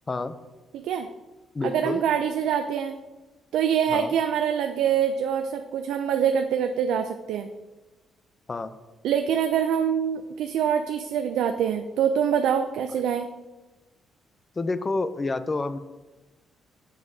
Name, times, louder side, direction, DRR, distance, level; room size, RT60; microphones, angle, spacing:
voice 1, 0.7-1.1 1.6-3.0 3.5-7.5 9.0-13.3, right 8 dB, 85° right, 6 dB, 0.3 m, -25 dB
voice 2, 1.5-2.0 3.9-4.1 8.5-8.8 14.6-15.8, left 3 dB, 30° left, 13 dB, 0.4 m, -28 dB
7.0 x 6.2 x 2.7 m, 1.2 s
cardioid pair, 90°, 0 cm